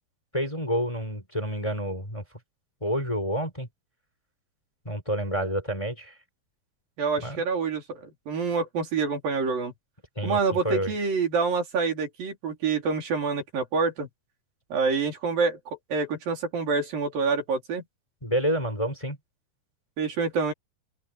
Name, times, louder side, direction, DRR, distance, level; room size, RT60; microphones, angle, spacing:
voice 1, 0.3-2.2 2.8-3.7 4.8-6.1 7.2-7.4 10.2-10.9 18.2-19.2, equal, 10° left, 4.5 m, -29 dB
voice 2, 7.0-8.0 8.3-9.7 10.2-14.1 14.7-15.6 15.9-17.8 20.0-20.5, right 4 dB, 90° right, 6.0 m, -27 dB
open air
omnidirectional pair, 3.9 m